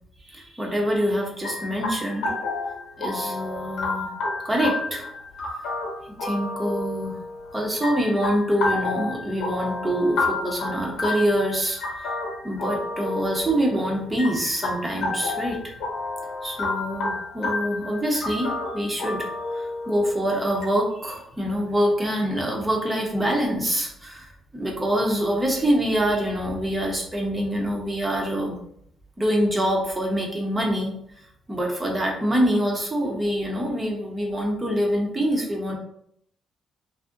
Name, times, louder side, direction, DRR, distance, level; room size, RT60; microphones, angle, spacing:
voice 1, 0.2-2.4 3.0-4.1 4.4-5.1 6.1-7.2 7.5-12.1 12.4-15.7 16.4-28.6 29.2-35.7, equal, 20° right, 0 dB, 0.7 m, -25 dB
sound 1, 1.4-20.6, left 3 dB, 85° left, 0.9 m, -31 dB
2.6 x 2.0 x 3.6 m, 0.71 s
cardioid pair, 90°, 0 cm